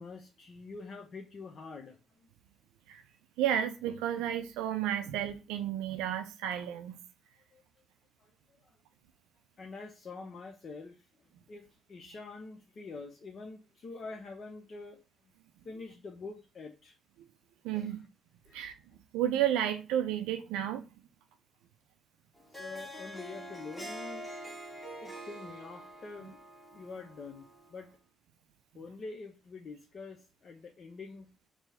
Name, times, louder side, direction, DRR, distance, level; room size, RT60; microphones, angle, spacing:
voice 1, 0.0-2.0 7.5-7.6 8.2-8.7 9.6-11.0 11.5-15.0 15.6-16.9 17.7-17.9 18.5-18.6 22.5-24.3 25.0-26.4 26.7-27.9 28.7-31.3, left 3 dB, 50° left, 0.6 m, -46 dB
voice 2, 3.4-7.0 17.6-18.0 18.5-18.7 19.1-20.8, right 11 dB, 75° right, 0.4 m, -32 dB
Harp, 22.4-27.8, right 1 dB, 5° left, 1.2 m, -45 dB
4.6 x 2.0 x 4.0 m
hypercardioid pair, 45°, 0 cm